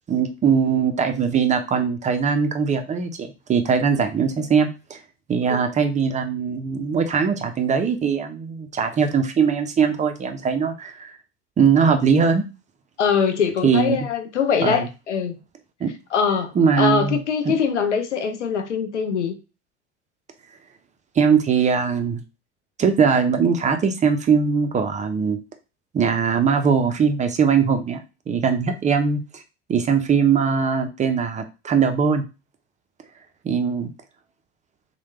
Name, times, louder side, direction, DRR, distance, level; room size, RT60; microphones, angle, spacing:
voice 1, 0.1-5.0 5.3-11.1 11.6-12.4 13.6-14.1 14.6-14.9 15.8-15.9 16.6-17.2 17.5-17.6 21.2-22.2 22.8-25.4 25.9-28.0 28.3-29.4 29.7-32.2 33.4-33.9, right 6 dB, 20° right, 0.5 m, -20 dB
voice 2, 13.0-15.4 16.1-19.3, left 6 dB, 85° left, 0.6 m, -22 dB
3.1 x 2.2 x 3.0 m
hypercardioid pair, 75°, 34 cm